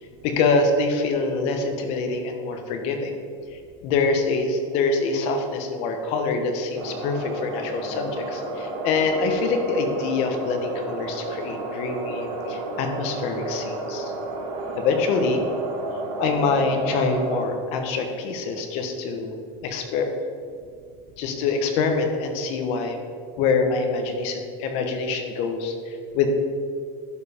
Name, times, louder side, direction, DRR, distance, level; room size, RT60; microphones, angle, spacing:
voice 1, 0.2-3.2 3.5-14.1 14.8-15.4 16.2-19.4 19.6-20.1 21.2-23.0 23.4-26.3, left 4 dB, 45° left, 5 dB, 1.1 m, -25 dB
sound 1, 6.8-17.4, right 2 dB, 70° right, 2.0 m, -31 dB
11.5 x 5.2 x 5.1 m, 2.2 s
cardioid pair, 175°, 15 cm